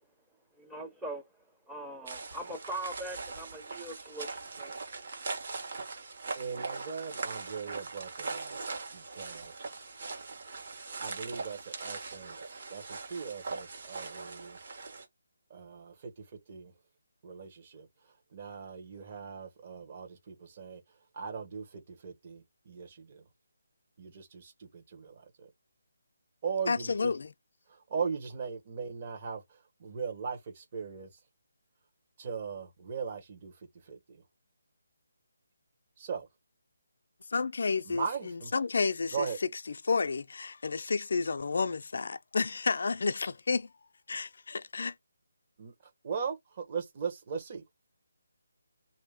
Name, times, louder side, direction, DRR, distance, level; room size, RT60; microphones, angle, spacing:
voice 1, 0.6-1.2 1.7-4.3 4.6-4.8, right 1 dB, 5° right, 0.7 m, -41 dB
sound 1, 2.1-15.1, right 4 dB, 50° right, 1.3 m, -41 dB
voice 2, 6.4-8.6 8.9-9.5 11.0-14.6 15.5-16.7 17.2-17.9 18.3-20.8 21.1-23.2 24.0-25.5 26.4-27.1 27.7-31.1 32.2-33.5 33.8-34.2 36.0-36.3 37.9-38.5 39.1-39.4 45.6-45.7 46.0-47.6, right 6 dB, 35° right, 1.0 m, -39 dB
voice 3, 26.7-27.3 37.3-39.3 39.8-43.7 44.1-44.9, left 4 dB, 60° left, 0.4 m, -31 dB
3.1 x 2.7 x 3.5 m
hypercardioid pair, 165°, 0 cm